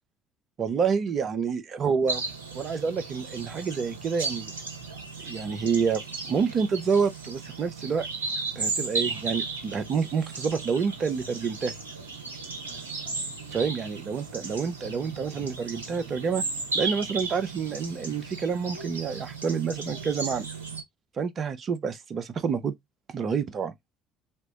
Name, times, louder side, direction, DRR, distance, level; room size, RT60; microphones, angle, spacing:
voice 1, 0.6-2.2 2.5-4.5 5.2-6.0 6.3-8.1 8.6-11.7 13.5-16.4 16.7-20.5 21.2-22.7 23.1-23.7, right 6 dB, 40° right, 0.7 m, -28 dB
sound 1, 2.1-20.8, right 4 dB, 80° right, 0.7 m, -35 dB
3.3 x 3.0 x 2.8 m
figure-of-eight pair, 55°, 0 cm